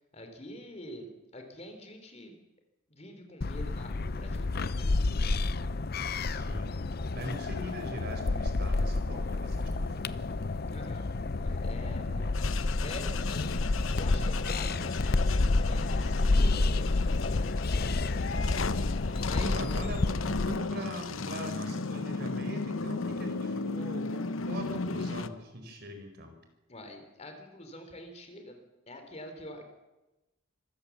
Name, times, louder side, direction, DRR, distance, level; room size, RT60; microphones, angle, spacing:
voice 1, 0.0-2.3 2.9-5.8 10.7-12.4 12.8-18.4 19.2-19.6 20.1-20.2 26.7-29.7, left 1 dB, 30° left, 5 dB, 3.4 m, -47 dB
sound 1, 3.4-20.6, left 3 dB, 50° left, 0.6 m, -29 dB
voice 2, 6.3-6.7 7.2-10.3 11.8-12.3 16.3-17.2 18.4-26.3, equal, 55° right, 5 dB, 4.5 m, -42 dB
sound 2, 12.3-25.3, left 3 dB, 80° left, 0.9 m, -36 dB
25.5 x 15.0 x 7.3 m, 1.0 s
head